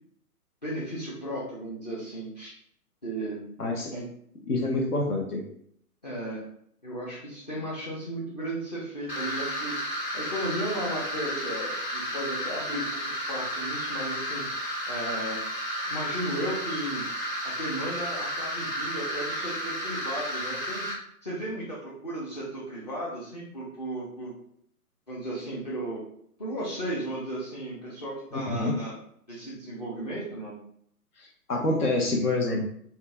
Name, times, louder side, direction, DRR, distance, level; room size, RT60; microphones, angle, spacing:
voice 1, 0.6-2.6 3.0-3.4 3.9-4.0 4.7-4.8 6.0-6.4 6.8-9.8 10.1-12.9 13.1-14.4 14.9-15.4 15.8-17.0 17.4-20.8 21.2-24.3 25.1-26.0 26.4-28.9 29.3-30.6, right 1 dB, 30° left, -7 dB, 0.5 m, -35 dB
voice 2, 3.6-3.9 4.5-5.4 28.3-28.8 31.2-32.7, left 2 dB, 75° left, -1 dB, 0.8 m, -27 dB
sound 1, 9.1-20.9, equal, 90° left, 1.3 m, -32 dB
2.7 x 2.3 x 2.6 m, 0.66 s
figure-of-eight pair, 130°, 47 cm